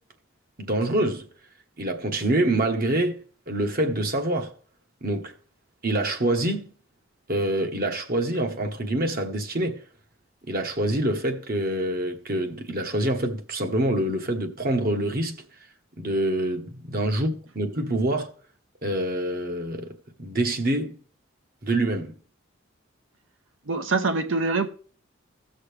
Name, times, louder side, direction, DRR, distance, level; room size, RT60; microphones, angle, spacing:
voice 1, 0.6-1.3 1.8-4.5 5.0-5.3 5.8-6.7 7.3-9.8 10.5-15.4 16.0-18.3 18.8-21.0 21.6-22.1, right 1 dB, 45° right, 1.2 m, -26 dB
voice 2, 23.7-24.7, right 3 dB, 70° right, 0.9 m, -24 dB
16.5 x 6.5 x 3.3 m
head